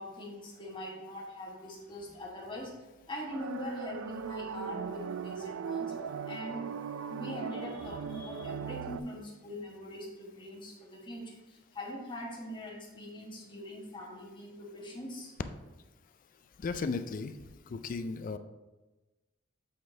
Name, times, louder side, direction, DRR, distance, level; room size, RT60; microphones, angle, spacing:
voice 1, 0.0-2.7 3.1-5.9 6.3-6.7 7.1-15.3, left 1 dB, 25° left, -2 dB, 1.3 m, -42 dB
sound 1, 3.3-9.0, right 6 dB, 70° right, 0.3 m, -38 dB
voice 2, 16.6-17.3 17.7-18.4, left 4 dB, 40° left, 10 dB, 0.4 m, -35 dB
7.7 x 3.9 x 3.8 m, 1.1 s
head